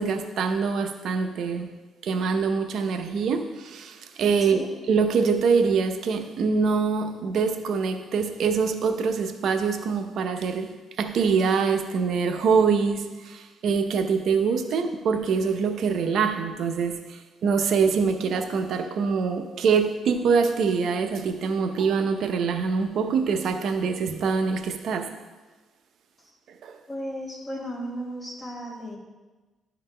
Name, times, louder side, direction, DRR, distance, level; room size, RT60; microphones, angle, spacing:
voice 1, 0.0-1.7 2.0-25.1 26.6-26.8, right 5 dB, 70° right, 6 dB, 0.6 m, -24 dB
voice 2, 26.9-29.0, equal, 20° left, -5 dB, 2.2 m, -35 dB
11.0 x 3.9 x 3.3 m, 1.2 s
cardioid pair, 90°, 0 cm